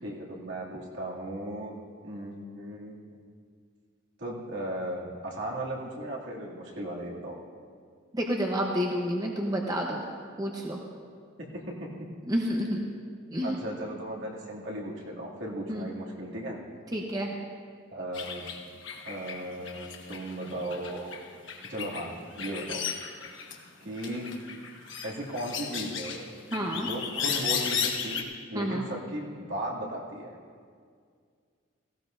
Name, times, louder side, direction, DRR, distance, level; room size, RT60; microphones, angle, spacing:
voice 1, 0.0-1.8 2.0-3.0 4.2-7.4 11.4-11.5 11.8-11.9 13.4-16.6 17.9-18.5 19.0-21.2 21.7-22.9 23.8-24.3 25.0-26.2 26.7-30.3, right 1 dB, 70° right, -3 dB, 2.5 m, -36 dB
voice 2, 8.1-10.0 10.4-10.8 12.3-12.8 13.3-13.6 15.7-15.9 16.9-17.3 26.5-26.9 28.5-28.9, equal, 20° right, -1 dB, 0.9 m, -29 dB
sound 1, 18.1-23.7 24.0-28.2, left 7 dB, 65° left, 1.2 m, -35 dB
17.5 x 16.5 x 2.6 m, 2.1 s
head